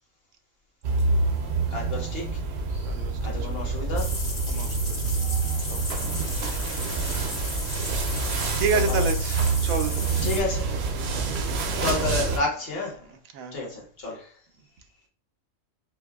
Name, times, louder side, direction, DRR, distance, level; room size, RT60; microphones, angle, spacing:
sound 1, 0.8-12.4, right 4 dB, 60° right, 0.8 m, -27 dB
voice 1, 1.4-2.3 2.7-2.9 3.2-4.1 5.2-5.6 8.9-9.0 10.2-10.6 11.8-13.0 13.5-14.3, left 3 dB, 50° left, 1.1 m, -31 dB
voice 2, 2.8-3.8 4.5-6.1 6.5-6.8 7.4-10.4 10.9-11.8 13.0-13.8, right 5 dB, 90° right, 1.0 m, -33 dB
sound 2, 4.0-10.4, left 2 dB, 75° left, 1.7 m, -34 dB
4.7 x 2.1 x 2.3 m
omnidirectional pair, 1.4 m